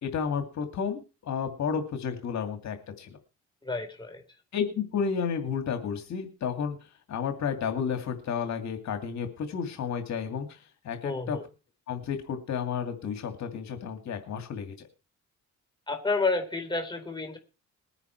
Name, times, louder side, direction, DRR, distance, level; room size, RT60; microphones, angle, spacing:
voice 1, 0.0-3.2 4.5-6.8 7.1-10.6 10.8-11.4 11.9-14.9, left 6 dB, 65° left, 6 dB, 2.4 m, -32 dB
voice 2, 3.6-4.2 11.0-11.4 15.9-17.4, left 3 dB, 15° left, 4 dB, 4.4 m, -30 dB
20.5 x 9.9 x 4.6 m, 0.33 s
cardioid pair, 90°, 30 cm